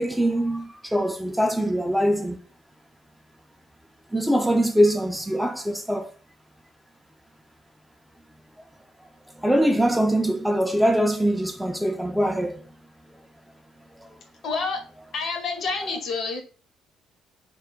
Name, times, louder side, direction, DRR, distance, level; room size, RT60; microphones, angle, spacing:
voice 1, 0.0-2.4 4.1-6.1 9.4-12.6, equal, 5° right, 0.3 m, -22 dB
voice 2, 14.4-14.8 15.1-16.4, left 4 dB, 50° left, 0.7 m, -28 dB
2.2 x 2.0 x 3.7 m
figure-of-eight pair, 50°, 0 cm